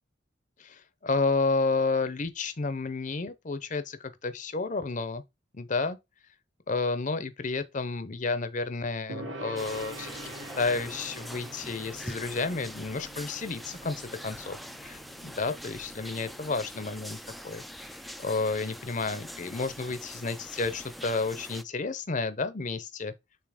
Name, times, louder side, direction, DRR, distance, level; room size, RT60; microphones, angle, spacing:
voice 1, 0.6-5.2 5.5-6.0 6.7-17.2 17.4-17.6 18.2-23.1, left 3 dB, 40° left, 0.7 m, -31 dB
Gong, 9.1-16.5, right 2 dB, 85° right, 1.1 m, -45 dB
sound 1, 9.6-21.6, equal, ahead, 0.3 m, -43 dB
6.8 x 2.9 x 4.9 m
head